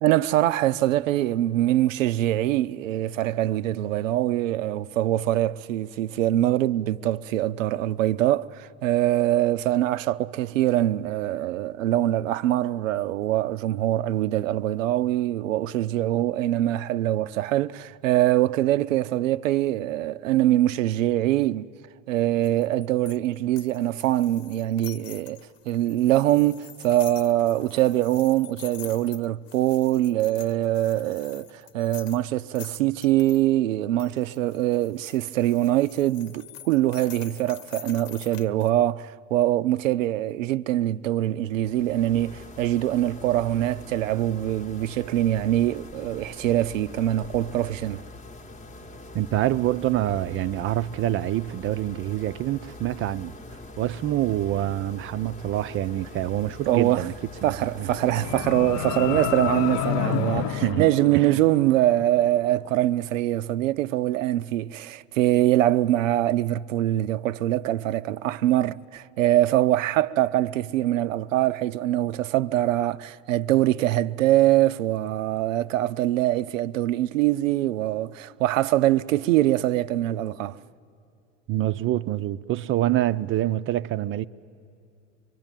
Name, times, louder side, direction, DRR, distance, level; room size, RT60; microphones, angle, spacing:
voice 1, 0.0-21.7 22.1-25.4 25.7-48.0 56.7-57.1 57.4-80.6, right 14 dB, 85° right, 0.6 m, -23 dB
sound 1, 22.4-33.4 34.0-38.7, left 10 dB, 75° left, 1.1 m, -46 dB
sound 2, 41.5-60.9, left 2 dB, 20° left, 0.9 m, -43 dB
voice 2, 49.1-53.3 53.8-57.1 57.4-57.9 60.3-60.8 61.1-61.4 81.5-84.2, right 13 dB, 35° right, 0.5 m, -26 dB
sound 3, 57.8-62.0, left 12 dB, 50° left, 0.6 m, -30 dB
24.0 x 23.0 x 9.0 m
hypercardioid pair, 95°, 38 cm